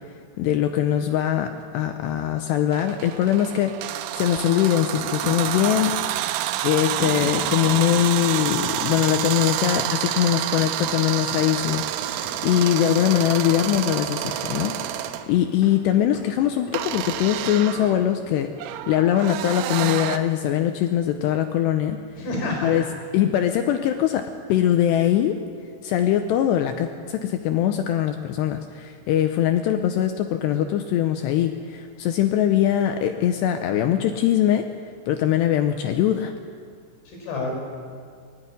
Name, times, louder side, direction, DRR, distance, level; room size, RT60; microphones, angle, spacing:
voice 1, 0.4-3.8 4.1-5.9 6.6-22.0 22.5-22.8 23.1-25.4 25.8-34.7 35.1-36.3, left 11 dB, 85° left, 7 dB, 2.5 m, -22 dB
sound 1, 2.7-15.3 16.7-20.2, right 12 dB, 80° right, 2.9 m, -28 dB
sound 2, 5.0-19.5, left 1 dB, 30° left, 5.2 m, -40 dB
voice 2, 22.2-22.9 37.1-37.5, left 2 dB, 65° left, 1 dB, 6.7 m, -29 dB
20.0 x 13.5 x 9.8 m, 2.1 s
omnidirectional pair, 5.7 m